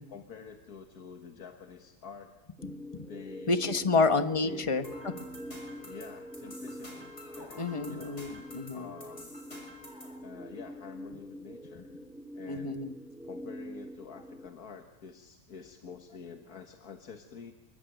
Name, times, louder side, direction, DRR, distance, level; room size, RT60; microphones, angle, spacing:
voice 1, 0.0-2.3 3.1-3.6 3.9-4.8 5.8-7.1 7.4-8.3 8.7-9.4 10.2-11.9 12.3-12.8 13.2-17.5, left 6 dB, 85° left, 5 dB, 2.0 m, -47 dB
sound 1, 2.6-14.5, equal, ahead, 1.0 m, -44 dB
voice 2, 3.5-5.1 7.6-8.9 12.5-12.9, left 3 dB, 25° left, 9 dB, 1.1 m, -29 dB
sound 2, 4.8-10.2, left 1 dB, 50° left, 6.9 m, -49 dB
27.5 x 23.0 x 9.2 m, 1.1 s
omnidirectional pair, 1.6 m